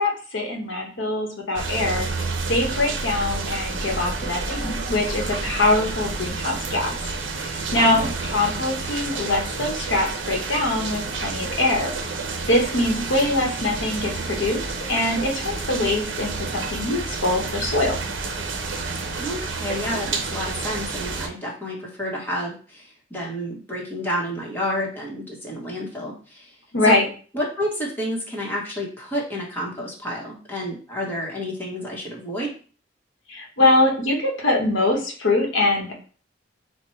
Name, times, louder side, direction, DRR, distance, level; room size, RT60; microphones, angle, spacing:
voice 1, 0.0-2.1 2.5-7.0 7.4-11.9 12.5-14.6 14.9-18.0 26.7-27.1 33.3-35.9, left 2 dB, 75° left, 0 dB, 1.0 m, -23 dB
sound 1, 1.5-21.3, right 4 dB, 70° right, 0.7 m, -30 dB
voice 2, 7.8-8.1 19.1-26.5 26.8-27.0 27.3-32.5, equal, 10° left, -4 dB, 1.0 m, -30 dB
4.3 x 2.2 x 4.4 m, 0.40 s
head